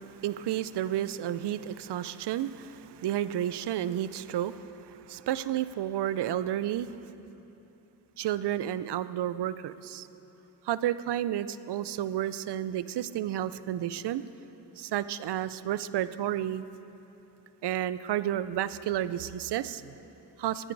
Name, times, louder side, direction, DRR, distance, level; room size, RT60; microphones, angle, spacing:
voice 1, 0.1-6.9 8.2-10.1 10.7-14.2 14.8-16.6 17.6-19.9 20.4-20.7, right 11 dB, 65° right, 15 dB, 0.5 m, -31 dB
17.0 x 10.0 x 4.6 m, 3.0 s
cardioid pair, 80°, 45 cm